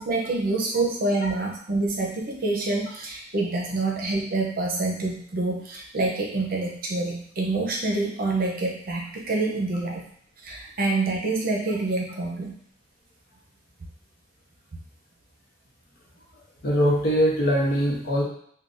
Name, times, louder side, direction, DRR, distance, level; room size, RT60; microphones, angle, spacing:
voice 1, 0.0-10.0 10.4-12.5, right 2 dB, 50° right, -1 dB, 0.6 m, -27 dB
voice 2, 16.6-18.2, equal, 55° left, -3 dB, 0.8 m, -22 dB
3.7 x 2.2 x 2.5 m, 0.63 s
head